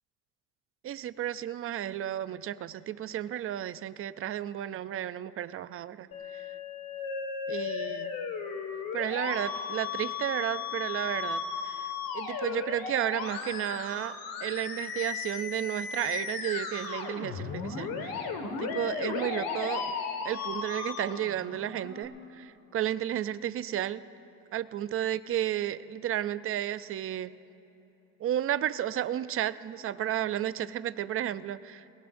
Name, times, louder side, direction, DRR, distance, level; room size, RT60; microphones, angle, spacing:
voice 1, 0.8-6.1 6.3-6.4 7.5-8.1 8.9-18.3 18.6-19.9 20.2-24.0 24.5-27.3 28.2-31.8, right 11 dB, 40° right, 14 dB, 0.5 m, -33 dB
Musical instrument, 6.1-22.0, left 5 dB, 70° left, 1.8 m, -35 dB
23.0 x 21.0 x 2.6 m, 3.0 s
cardioid pair, 135°, 36 cm